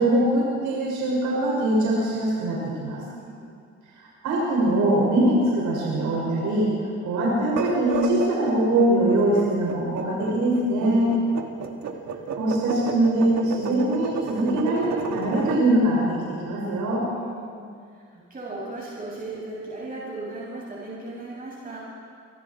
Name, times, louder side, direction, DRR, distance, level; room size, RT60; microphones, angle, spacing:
voice 1, 0.0-3.0 4.2-6.7 7.0-11.2 12.3-17.0, right 1 dB, 85° right, -5 dB, 7.0 m, -22 dB
voice 2, 3.2-3.5 10.8-11.8 17.1-17.7 18.1-21.8, right 2 dB, 30° right, -5 dB, 7.9 m, -37 dB
sound 1, 7.4-15.6, right 6 dB, 65° right, 2.5 m, -32 dB
29.0 x 25.5 x 4.9 m, 2.2 s
cardioid pair, 90°, 30 cm